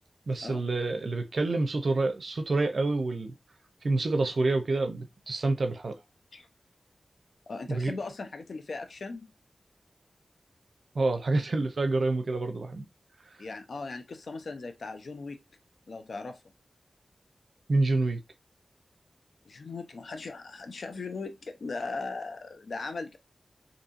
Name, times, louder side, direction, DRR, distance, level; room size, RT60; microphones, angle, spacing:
voice 1, 0.3-3.3 3.8-5.9 7.7-7.9 10.9-12.9 17.7-18.2, right 2 dB, 70° right, 0.5 m, -27 dB
voice 2, 7.5-9.3 13.4-15.4 15.9-16.4 19.4-23.2, left 3 dB, 80° left, 0.5 m, -38 dB
2.7 x 2.7 x 2.4 m
cardioid pair, 55°, 0 cm